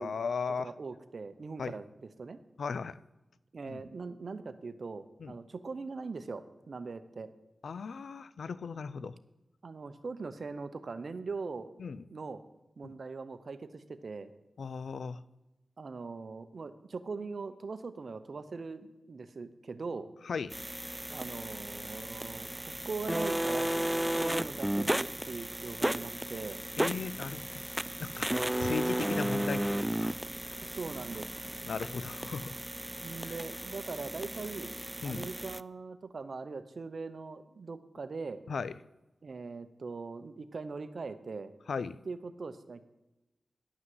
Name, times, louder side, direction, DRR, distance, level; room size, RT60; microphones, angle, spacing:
voice 1, 0.0-0.7 1.6-1.7 2.6-3.0 3.7-3.8 5.2-5.3 7.6-9.1 11.8-12.0 12.8-12.9 14.6-15.2 20.3-20.5 26.8-27.6 28.0-30.2 31.6-32.6 33.2-33.3 35.0-35.3 38.5-38.7 41.7-42.0, left 5 dB, 85° left, 17 dB, 0.4 m, -37 dB
voice 2, 0.6-2.4 3.5-7.3 9.6-11.7 12.1-12.4 12.8-14.3 15.8-20.1 21.1-23.8 24.2-26.6 30.6-31.4 33.0-34.7 35.0-38.4 39.2-41.5 42.1-42.8, right 4 dB, 65° right, 11 dB, 0.8 m, -41 dB
sound 1, 20.5-35.6, right 1 dB, 10° right, 0.4 m, -34 dB
11.0 x 6.0 x 7.8 m, 0.99 s
cardioid pair, 55°, 0 cm